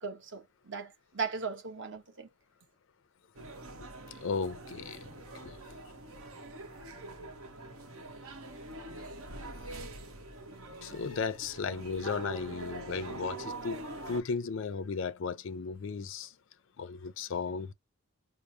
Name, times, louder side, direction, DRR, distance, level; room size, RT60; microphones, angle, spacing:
voice 1, 0.0-2.3, right 5 dB, 55° right, 1.0 m, -38 dB
sound 1, 3.3-14.2, right 2 dB, 85° right, 1.1 m, -44 dB
voice 2, 4.1-5.1 5.3-5.6 10.8-13.8 14.1-16.3 16.8-17.7, left 5 dB, 60° left, 0.5 m, -35 dB
4.8 x 2.0 x 2.7 m
head